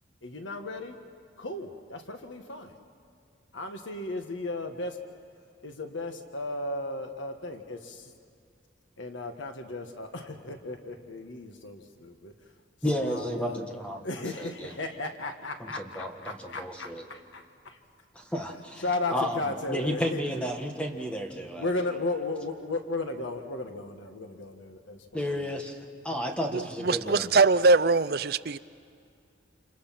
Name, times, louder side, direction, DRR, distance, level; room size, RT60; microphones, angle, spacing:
voice 1, 0.2-1.0 1.4-2.8 3.5-5.0 5.6-8.1 9.0-12.3 12.8-13.6 14.0-17.8 18.4-20.5 21.5-25.6 26.1-26.3, left 2 dB, 80° left, 1.5 m, -35 dB
voice 2, 12.8-14.0 14.4-14.7 15.6-17.0 18.1-18.8 19.1-19.4 19.7-21.7 25.1-25.8 26.0-27.3, equal, 5° left, 1.6 m, -32 dB
voice 3, 26.5-28.6, right 3 dB, 50° right, 0.5 m, -22 dB
29.5 x 28.0 x 5.9 m
head